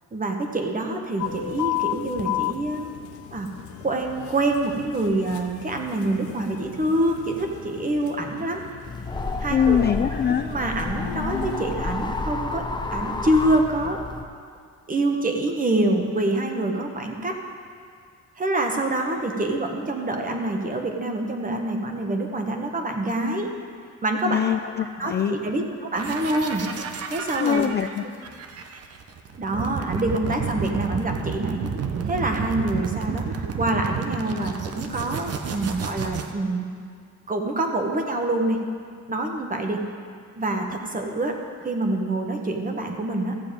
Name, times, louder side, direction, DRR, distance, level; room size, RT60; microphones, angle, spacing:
voice 1, 0.1-2.9 3.3-3.5 3.8-8.6 9.4-9.8 10.3-12.6 12.9-14.0 14.9-17.4 18.4-23.5 24.0-24.4 25.0-26.7 27.1-27.9 29.4-31.6 32.0-36.6 37.3-38.7 39.1-39.8 40.3-43.4, right 2 dB, 25° right, 3 dB, 1.4 m, -26 dB
sound 1, 1.2-11.7, left 12 dB, 75° left, 0.8 m, -34 dB
sound 2, 8.8-14.2, left 3 dB, 15° left, 0.8 m, -30 dB
voice 2, 9.5-10.5 24.3-25.4 27.4-28.0, left 8 dB, 35° left, 8 dB, 0.4 m, -23 dB
sound 3, 26.0-36.3, right 6 dB, 55° right, 0.9 m, -31 dB
14.5 x 7.1 x 5.3 m, 2.1 s
cardioid pair, 90°, 30 cm